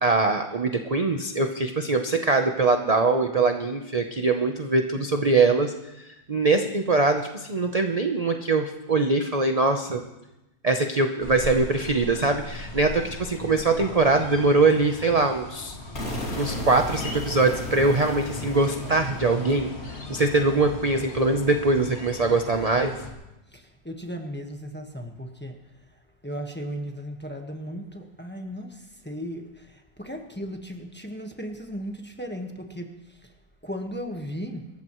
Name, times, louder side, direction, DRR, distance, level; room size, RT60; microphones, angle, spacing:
voice 1, 0.0-10.0 10.6-15.8 16.4-19.7 20.1-22.9, right 3 dB, 35° right, 5 dB, 0.6 m, -22 dB
sound 1, 11.2-23.1, left 2 dB, 40° left, 2.4 m, -39 dB
sound 2, 15.9-21.8, left 1 dB, 55° left, 3.1 m, -36 dB
voice 2, 23.5-25.6 26.2-33.3 33.6-34.7, equal, 5° left, 3 dB, 1.1 m, -36 dB
25.5 x 14.5 x 3.1 m, 0.97 s
omnidirectional pair, 1.9 m